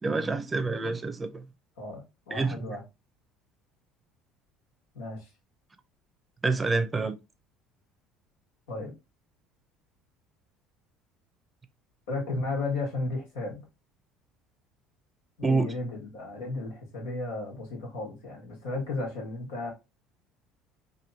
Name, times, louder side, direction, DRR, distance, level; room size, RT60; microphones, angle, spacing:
voice 1, 0.0-1.5 2.3-2.8 6.4-7.2 15.4-15.7, right 3 dB, 25° right, 0.6 m, -27 dB
voice 2, 1.8-2.8 4.9-5.3 8.7-8.9 12.1-13.7 15.4-19.7, left 2 dB, 85° left, 1.4 m, -34 dB
3.1 x 2.7 x 4.0 m
hypercardioid pair, 75°, 0 cm